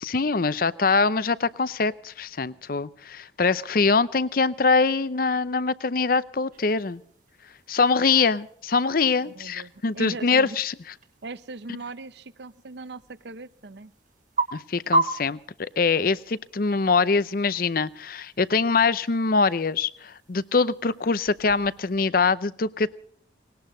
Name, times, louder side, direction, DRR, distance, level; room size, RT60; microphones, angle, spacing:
voice 1, 0.0-7.0 7.7-10.7 14.5-22.9, left 4 dB, 50° left, 18 dB, 0.6 m, -23 dB
sound 1, 6.5-22.0, right 2 dB, 45° right, 1.7 m, -36 dB
voice 2, 9.2-10.6 11.2-13.9, right 3 dB, 65° right, 16 dB, 0.7 m, -39 dB
20.0 x 18.0 x 3.9 m, 0.62 s
head